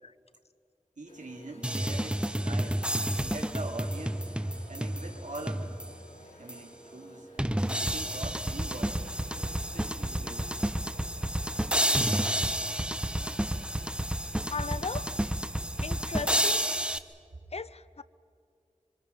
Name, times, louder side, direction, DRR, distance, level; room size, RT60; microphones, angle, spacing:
voice 1, 1.0-2.9 3.2-4.3 4.7-5.9 6.4-7.3 7.6-9.0 9.3-10.7, right 2 dB, 70° right, 1 dB, 2.7 m, -43 dB
sound 1, 1.1-16.0, equal, 85° left, 5.3 m, -53 dB
sound 2, 1.6-6.1 6.5-6.6 7.4-17.0, right 1 dB, 10° right, 0.9 m, -30 dB
voice 2, 14.5-15.1 15.8-16.6 17.5-18.0, left 4 dB, 55° left, 17 dB, 0.6 m, -36 dB
26.0 x 25.0 x 5.5 m, 2.3 s
wide cardioid pair, 65°, 13 cm